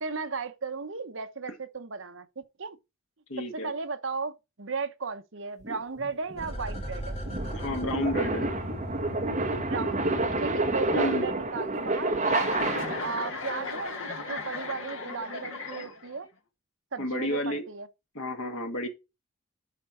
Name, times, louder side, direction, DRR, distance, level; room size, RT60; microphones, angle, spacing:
voice 1, 0.0-2.8 3.5-4.3 4.6-7.2 9.6-10.1 10.4-12.2 13.0-14.0 14.3-16.3 16.9-17.9, right 4 dB, 65° right, 1.0 m, -35 dB
voice 2, 3.3-3.7 7.5-8.5 10.9-11.3 17.0-17.6 18.1-18.9, left 1 dB, 85° left, 2.1 m, -31 dB
sound 1, 5.6-13.2, right 2 dB, 35° right, 1.4 m, -29 dB
sound 2, 6.4-11.6 11.9-12.0, equal, 30° left, 3.1 m, -38 dB
Chuckle chortle, 12.2-16.3, left 3 dB, 70° left, 2.0 m, -36 dB
11.0 x 4.5 x 4.3 m
head